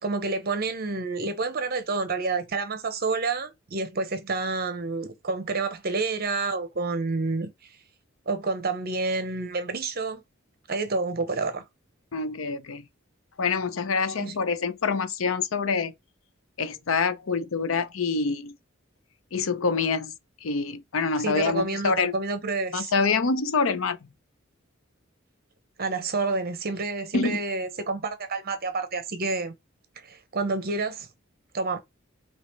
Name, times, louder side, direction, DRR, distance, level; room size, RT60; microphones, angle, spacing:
voice 1, 0.0-7.5 8.3-10.2 10.7-11.6 14.2-14.4 21.2-22.9 25.8-29.5 30.0-31.1 31.5-31.8, right 3 dB, 50° right, 0.9 m, -29 dB
voice 2, 12.1-12.8 13.4-15.9 16.6-18.6 19.3-20.1 20.4-22.1 22.7-24.0 27.1-27.4, left 4 dB, 75° left, 0.6 m, -26 dB
5.0 x 2.9 x 3.1 m
head